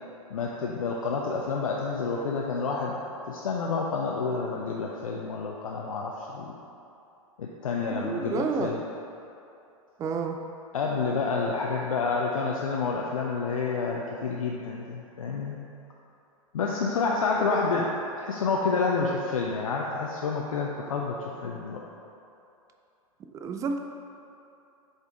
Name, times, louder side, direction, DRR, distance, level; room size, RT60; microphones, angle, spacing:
voice 1, 0.3-3.0 3.3-6.5 7.4-8.8 10.7-15.6 16.5-17.9 18.2-21.9, left 4 dB, 70° left, -1 dB, 0.5 m, -29 dB
voice 2, 7.9-8.7 10.0-10.4 17.5-17.7 23.3-23.8, right 5 dB, 20° right, 4 dB, 0.4 m, -30 dB
6.8 x 4.0 x 3.6 m, 2.8 s
figure-of-eight pair, 95°, 18 cm